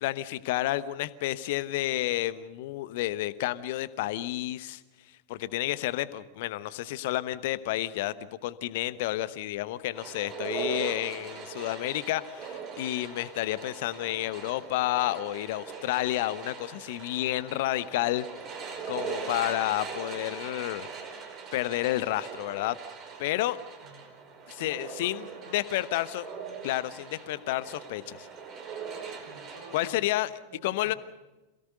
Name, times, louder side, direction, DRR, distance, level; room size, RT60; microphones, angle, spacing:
voice 1, 0.0-4.8 5.3-8.1 8.4-18.2 18.9-20.9 21.5-22.8 23.2-23.6 24.5-25.2 25.5-26.3 26.6-28.3 29.7-30.3 30.6-30.9, left 15 dB, 50° left, 16 dB, 1.0 m, -30 dB
sound 1, 9.9-29.9, right 5 dB, 30° right, 4.7 m, -41 dB
voice 2, 23.2-24.3 24.6-25.6 29.2-30.0 30.5-31.0, right 3 dB, 75° right, 4 dB, 4.6 m, -51 dB
27.5 x 17.5 x 6.7 m, 1.1 s
figure-of-eight pair, 90°, 0 cm